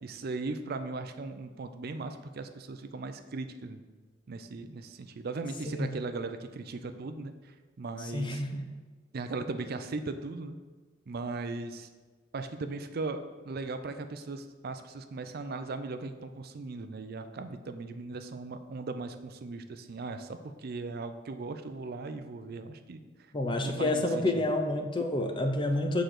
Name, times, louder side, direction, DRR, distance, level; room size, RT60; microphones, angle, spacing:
voice 1, 0.0-3.8 4.3-7.3 7.8-8.4 9.1-10.6 11.1-11.9 12.3-23.0 23.6-24.0 24.3-24.5, right 3 dB, 50° right, 9 dB, 0.4 m, -38 dB
voice 2, 8.0-8.6 23.3-26.0, left 1 dB, 25° left, 5 dB, 0.6 m, -29 dB
6.8 x 3.8 x 6.3 m, 1.3 s
head